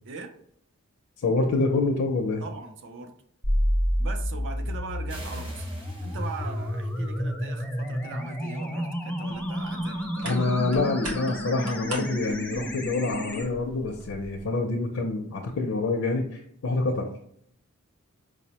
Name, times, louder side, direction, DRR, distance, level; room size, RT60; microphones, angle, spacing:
voice 1, 1.2-2.4 10.2-17.1, left 3 dB, 65° left, 1 dB, 0.4 m, -26 dB
voice 2, 2.4-3.1 4.0-5.7 6.0-10.5, right 4 dB, 60° right, 7 dB, 0.4 m, -40 dB
sound 1, 3.4-13.4, equal, 5° left, 0.3 m, -30 dB
sound 2, 5.1-7.1, right 1 dB, 25° right, 0.7 m, -47 dB
sound 3, 9.3-14.5, right 2 dB, 90° right, 0.9 m, -42 dB
4.9 x 2.0 x 2.8 m, 0.68 s
head